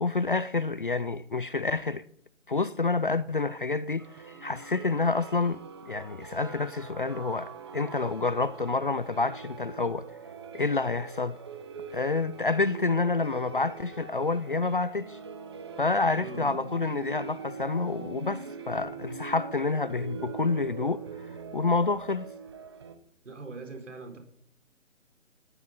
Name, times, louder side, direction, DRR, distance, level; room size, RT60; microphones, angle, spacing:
voice 1, 0.0-2.0 2.5-10.1 10.5-11.4 11.9-15.2 15.8-22.3, left 3 dB, 40° left, 0.5 m, -28 dB
sound 1, 4.0-22.9, right 5 dB, 20° right, 1.1 m, -42 dB
voice 2, 23.2-24.2, right 3 dB, 65° right, 4.8 m, -41 dB
19.0 x 10.5 x 5.9 m
figure-of-eight pair, 165°, 40 cm